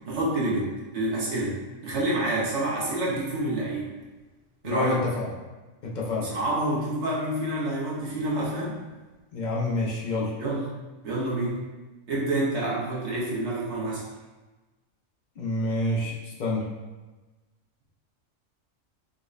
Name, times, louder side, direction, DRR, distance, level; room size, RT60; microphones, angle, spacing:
voice 1, 0.1-1.6 1.8-3.9 4.6-5.0 6.1-8.8 10.4-10.7 11.0-11.6 12.1-14.0, right 1 dB, 65° right, -5 dB, 1.0 m, -28 dB
voice 2, 4.6-5.2 5.8-6.3 9.3-10.3 15.4-16.6, left 2 dB, 70° left, -3 dB, 0.4 m, -28 dB
4.8 x 2.1 x 2.4 m, 1.2 s
omnidirectional pair, 1.4 m